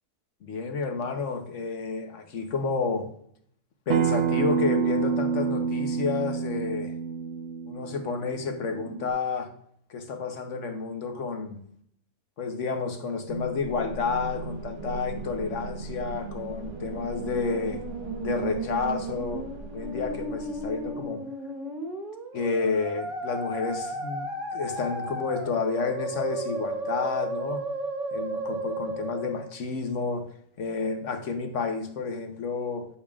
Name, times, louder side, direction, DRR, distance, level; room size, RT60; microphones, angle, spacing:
voice 1, 0.4-3.1 3.9-6.9 7.7-9.5 9.9-11.6 12.4-17.8 18.2-19.5 19.7-21.2 22.3-27.6 28.1-30.3 30.6-32.9, left 4 dB, 60° left, 5 dB, 1.2 m, -30 dB
Acoustic guitar, 3.9-9.1, right 6 dB, 65° right, 0.7 m, -28 dB
sound 1, 13.3-21.1, right 3 dB, 90° right, 2.0 m, -39 dB
Musical instrument, 16.5-29.6, right 2 dB, 30° right, 1.3 m, -34 dB
8.6 x 7.1 x 2.4 m, 0.65 s
omnidirectional pair, 1.5 m